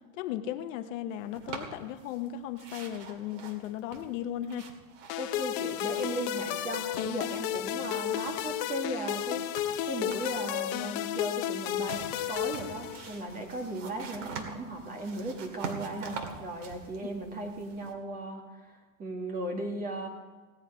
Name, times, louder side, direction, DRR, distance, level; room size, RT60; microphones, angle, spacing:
voice 1, 0.1-4.7, left 11 dB, 60° left, 9 dB, 0.9 m, -36 dB
sound 1, 1.3-2.3 2.5-6.3 6.6-7.9 8.3-10.5 11.6-17.9, right 5 dB, 55° right, 2.2 m, -45 dB
sound 2, 5.1-13.4, left 12 dB, 40° left, 0.6 m, -33 dB
voice 2, 5.2-9.4 9.9-20.1, right 1 dB, 20° right, 1 dB, 2.1 m, -37 dB
17.5 x 10.0 x 4.9 m, 1.4 s
supercardioid pair, 155°, 43 cm